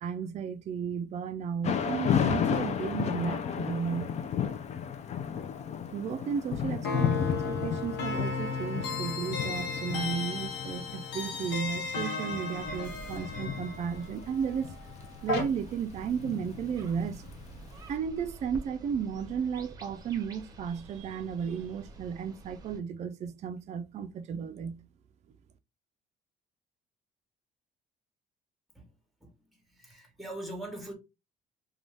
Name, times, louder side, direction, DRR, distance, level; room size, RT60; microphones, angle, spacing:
voice 1, 0.0-4.1 5.9-7.1 7.5-14.8 15.2-17.2 17.9-24.8, right 7 dB, 45° right, 0.4 m, -34 dB
Thunder / Rain, 1.6-17.7, left 8 dB, 40° left, 0.4 m, -34 dB
sound 1, 6.8-15.4, left 3 dB, 80° left, 0.8 m, -35 dB
sound 2, 12.5-22.8, right 3 dB, 25° right, 0.7 m, -48 dB
voice 2, 29.2-30.9, right 1 dB, ahead, 1.0 m, -42 dB
2.5 x 2.3 x 3.2 m
cardioid pair, 110°, 17 cm